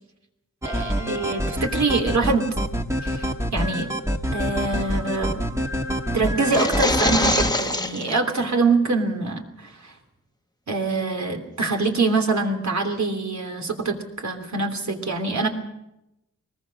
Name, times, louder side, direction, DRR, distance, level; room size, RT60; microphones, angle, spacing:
sound 1, 0.6-7.5, equal, 10° right, 1.4 m, -26 dB
voice 1, 0.6-2.5 3.0-3.9 4.3-5.4 6.1-9.9 10.7-15.5, right 3 dB, 65° right, 4 dB, 3.1 m, -24 dB
sound 2, 6.4-8.2, left 1 dB, 15° left, 1.0 m, -24 dB
22.0 x 20.0 x 6.5 m, 0.89 s
wide cardioid pair, 110°, 31 cm